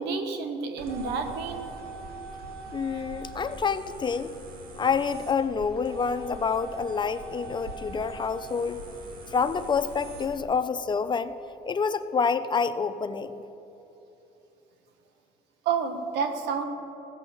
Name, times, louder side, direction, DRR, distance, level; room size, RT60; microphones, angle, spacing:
voice 1, 0.0-1.7 15.6-16.6, right 5 dB, 85° right, 7 dB, 1.3 m, -29 dB
sound 1, 0.8-10.4, right 3 dB, 65° right, 1.8 m, -42 dB
voice 2, 2.7-4.3 4.8-8.8 9.3-11.3 11.6-13.4, left 5 dB, 25° left, 11 dB, 0.5 m, -27 dB
15.5 x 6.5 x 7.1 m, 3.0 s
cardioid pair, 110°, 17 cm